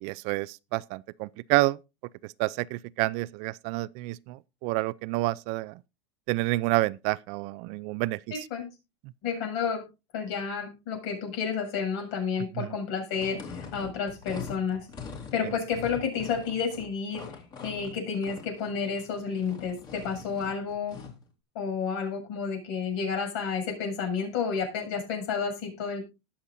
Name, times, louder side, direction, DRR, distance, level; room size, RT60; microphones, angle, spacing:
voice 1, 0.0-1.8 2.4-5.7 6.3-8.2 12.6-12.7, right 20 dB, 50° right, 0.4 m, -28 dB
voice 2, 8.3-8.7 9.2-9.8 10.1-14.9 15.3-17.3 17.6-21.0 21.5-26.0, left 6 dB, 65° left, 7.4 m, -31 dB
sound 1, 13.1-21.2, left 5 dB, 30° left, 2.9 m, -43 dB
20.0 x 7.2 x 2.6 m
supercardioid pair, 140°, 14 cm